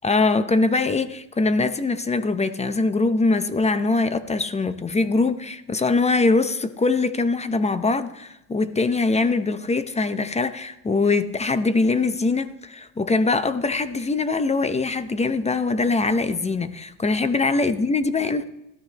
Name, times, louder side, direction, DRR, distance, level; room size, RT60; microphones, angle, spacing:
voice 1, 0.0-18.5, left 3 dB, 15° left, 0.7 m, -22 dB
16.5 x 13.0 x 2.9 m
supercardioid pair, 95°, 48 cm